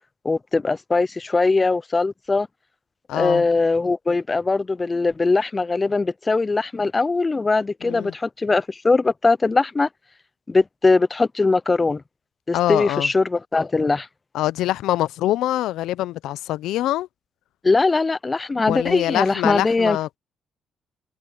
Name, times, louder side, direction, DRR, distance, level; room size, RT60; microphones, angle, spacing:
voice 1, 0.2-2.5 3.1-9.9 10.5-12.0 12.5-14.1 17.6-20.0, left 3 dB, 25° left, 0.4 m, -21 dB
voice 2, 3.1-3.4 7.8-8.1 12.5-13.1 14.3-17.1 18.7-20.2, left 14 dB, 85° left, 0.5 m, -24 dB
cardioid pair, 100°, 0 cm